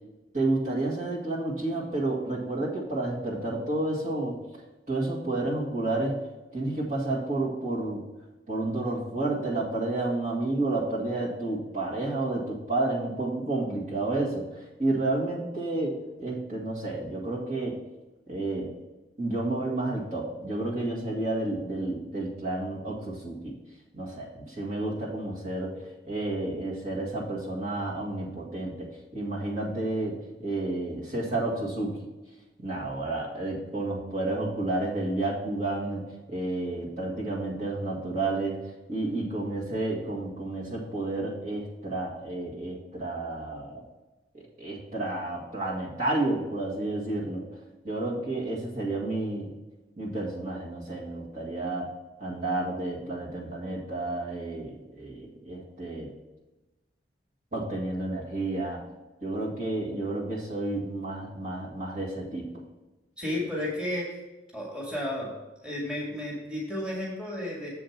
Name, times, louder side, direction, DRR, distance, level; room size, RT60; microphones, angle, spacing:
voice 1, 0.3-4.6 4.9-6.2 6.5-8.0 8.5-17.8 18.3-18.7 19.2-23.5 23.9-32.0 32.6-38.6 38.9-43.8 44.3-47.4 47.8-49.5 50.0-51.9 52.2-56.1 57.5-58.8 59.2-62.5, right 2 dB, 40° right, -5 dB, 1.8 m, -31 dB
voice 2, 63.2-64.2 64.5-65.3 65.6-67.7, left 1 dB, 5° right, -5 dB, 1.9 m, -32 dB
7.6 x 5.0 x 5.8 m, 1.1 s
head